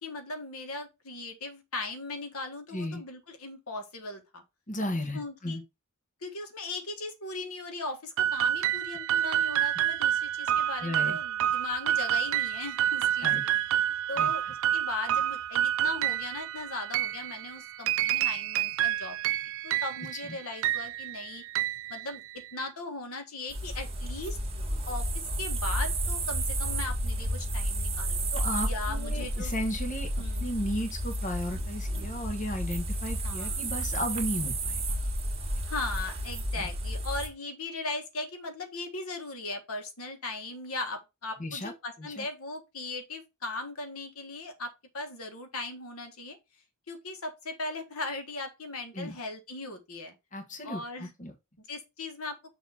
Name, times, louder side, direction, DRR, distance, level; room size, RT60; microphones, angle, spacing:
voice 1, 0.0-4.4 5.1-5.6 6.2-13.3 14.1-19.2 19.6-21.4 21.9-22.2 22.5-24.4 24.9-25.1 25.4-28.3 28.6-29.5 30.2-30.5 33.2-33.6 35.6-46.4 46.9-50.1 50.6-51.1 51.7-52.4, left 3 dB, 75° left, 1.4 m, -38 dB
voice 2, 4.7-5.6 10.8-11.2 13.2-13.4 14.2-14.3 20.1-20.2 28.3-30.1 30.4-34.8 36.5-36.7 41.4-41.7 42.0-42.2 48.9-49.1 50.3-51.3, left 1 dB, 35° left, 1.2 m, -34 dB
sound 1, 8.2-22.6, right 11 dB, 60° right, 0.3 m, -29 dB
sound 2, 23.5-37.3, right 1 dB, 25° right, 1.8 m, -32 dB
6.6 x 3.0 x 5.6 m
head